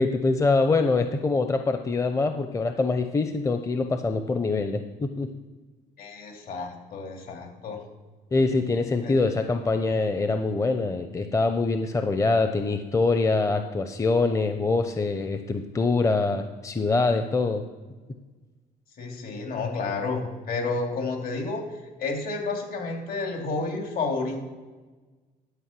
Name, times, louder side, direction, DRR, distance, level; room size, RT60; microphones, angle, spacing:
voice 1, 0.0-5.3 8.3-17.6, left 3 dB, 20° left, 7 dB, 0.7 m, -24 dB
voice 2, 6.0-7.8 9.0-9.1 19.0-21.6 22.0-24.4, left 3 dB, 60° left, 1 dB, 3.0 m, -30 dB
11.5 x 5.3 x 7.5 m, 1.3 s
cardioid pair, 110°, 17 cm